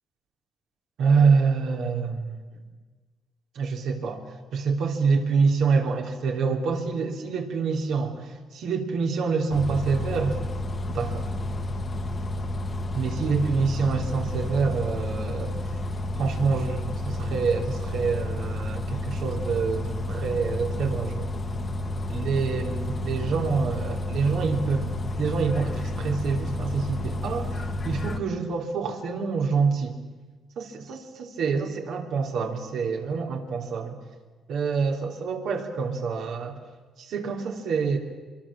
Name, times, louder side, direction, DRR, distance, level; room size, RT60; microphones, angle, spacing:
voice 1, 1.0-2.4 3.6-4.2 4.5-10.4 10.9-11.3 12.9-15.5 16.2-21.3 22.1-30.0 30.6-34.0 34.5-36.6 37.0-38.0, right 5 dB, 75° right, 2 dB, 3.5 m, -26 dB
Bus, 9.5-28.2, left 1 dB, 40° left, 1.8 m, -31 dB
24.5 x 23.0 x 7.5 m, 1.4 s
cardioid pair, 90°, 0 cm